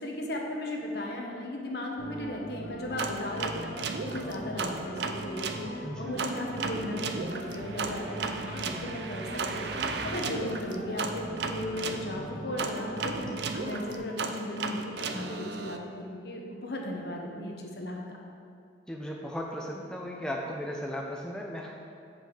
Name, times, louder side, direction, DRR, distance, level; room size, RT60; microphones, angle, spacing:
voice 1, 0.0-3.7 4.0-18.0, left 1 dB, 60° left, 0 dB, 1.1 m, -36 dB
sound 1, 2.0-14.0, equal, 80° right, 1.3 m, -40 dB
sound 2, 3.0-5.6 6.2-12.0 12.6-15.8, right 4 dB, 65° right, 0.5 m, -34 dB
voice 2, 5.8-6.2 18.9-21.7, equal, 5° left, -1 dB, 0.5 m, -36 dB
7.9 x 5.2 x 5.0 m, 2.5 s
head